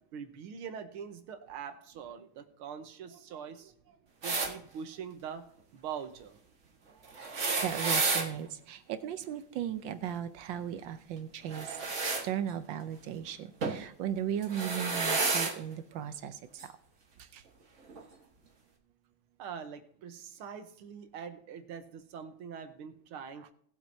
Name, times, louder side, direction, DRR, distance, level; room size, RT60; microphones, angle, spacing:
voice 1, 0.1-4.0 4.2-5.4 5.7-6.4 6.9-7.0 19.4-23.5, right 7 dB, 85° right, 8 dB, 1.9 m, -43 dB
sound 1, 4.2-4.5 7.1-8.3 11.5-12.2 13.6-13.8 14.4-15.5 16.6-16.7 17.9-18.0, right 4 dB, 40° right, 1.6 m, -30 dB
voice 2, 7.6-11.7 12.0-16.3 17.3-17.4, right 9 dB, 70° right, 10 dB, 1.3 m, -36 dB
19.0 x 7.6 x 2.7 m, 0.64 s
omnidirectional pair, 2.3 m